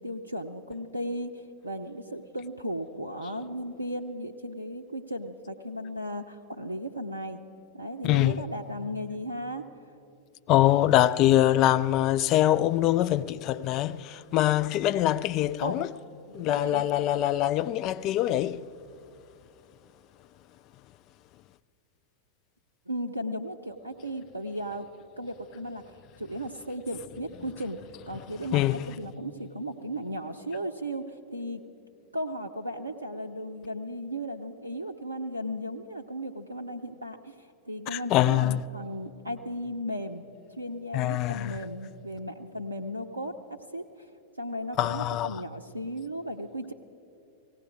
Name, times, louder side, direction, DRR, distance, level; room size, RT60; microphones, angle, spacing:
voice 1, 0.0-7.4 7.7-9.6 15.6-15.9 16.3-16.8 22.9-24.9 25.2-25.8 26.2-27.8 28.1-31.6 32.1-40.2 40.5-43.3 43.7-44.1 44.4-46.7, equal, 85° right, 0.5 m, -36 dB
voice 2, 8.0-8.4 10.5-15.9 16.3-18.7 28.5-28.9 37.9-38.6 40.9-41.6 44.8-45.4, left 13 dB, 40° left, 0.3 m, -24 dB
18.5 x 16.0 x 4.7 m
figure-of-eight pair, 90°, 0 cm